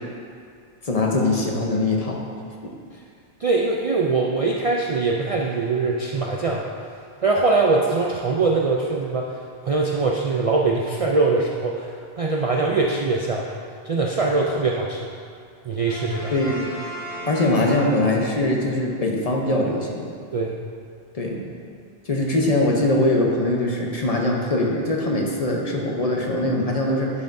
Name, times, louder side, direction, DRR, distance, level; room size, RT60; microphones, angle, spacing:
voice 1, 0.8-2.2 2.6-2.7 16.3-16.7 17.2-20.1 21.1-21.4 22.1-27.1, left 1 dB, 40° left, -1 dB, 0.8 m, -22 dB
voice 2, 3.4-6.6 7.2-9.3 9.6-11.9 12.2-13.5 13.8-15.1 15.6-16.3 20.3-20.5 25.5-25.6, right 3 dB, 50° right, -2 dB, 0.4 m, -22 dB
Brass instrument, 15.9-18.5, equal, 20° left, 1.3 m, -36 dB
11.0 x 5.7 x 2.6 m, 2.3 s
omnidirectional pair, 1.1 m